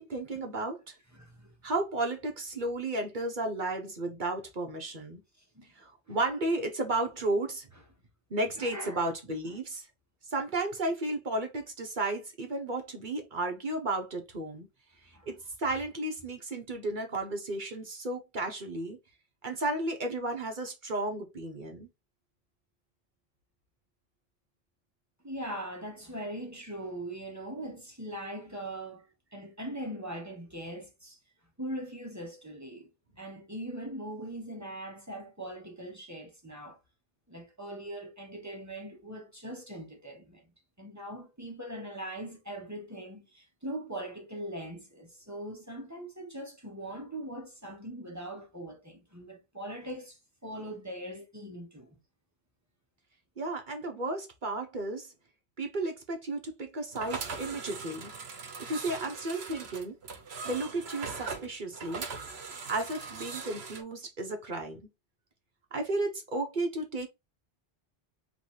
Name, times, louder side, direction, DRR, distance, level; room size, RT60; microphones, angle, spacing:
voice 1, 0.0-0.9 1.6-5.2 5.7-7.7 8.3-9.9 10.3-14.7 15.3-19.0 19.4-21.9 53.4-55.1 55.6-58.1 58.6-60.0 60.4-62.1 62.7-64.8 65.7-67.1, right 2 dB, 50° right, 1.1 m, -33 dB
voice 2, 1.1-1.6 5.4-5.6 6.1-6.2 8.6-9.1 9.5-9.6 15.1-15.3 25.2-29.1 29.3-31.2 31.6-32.9 33.2-36.8 37.3-40.4 40.8-52.0, right 1 dB, 15° right, 1.2 m, -41 dB
sound 1, 56.9-63.8, right 4 dB, 90° right, 1.2 m, -40 dB
3.2 x 3.2 x 4.3 m
omnidirectional pair, 1.0 m